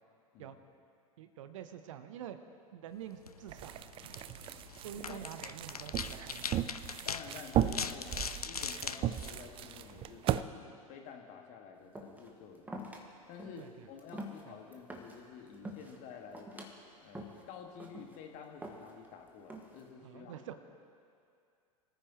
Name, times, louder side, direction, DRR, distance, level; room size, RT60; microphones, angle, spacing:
voice 1, 1.2-2.4 2.7-4.2 4.8-6.6 13.6-13.9 14.5-14.6 20.0-20.5, right 10 dB, 60° right, 9 dB, 1.0 m, -47 dB
sound 1, 3.1-10.1, left 5 dB, 85° left, 0.5 m, -42 dB
sound 2, 3.5-10.4, right 12 dB, 30° right, 0.5 m, -36 dB
voice 2, 5.0-5.3 7.0-12.9 13.3-16.7 17.0-20.4, left 6 dB, 45° left, 3 dB, 2.0 m, -50 dB
sound 3, 11.9-12.3 12.7-13.0 13.4-13.7 14.0-15.2 15.5-16.0 16.3-16.7 17.1-17.4 17.8-18.2 18.6-19.1 19.5-19.9, equal, 10° right, 1.8 m, -45 dB
25.5 x 14.0 x 3.1 m, 2.4 s
figure-of-eight pair, 85°, 19 cm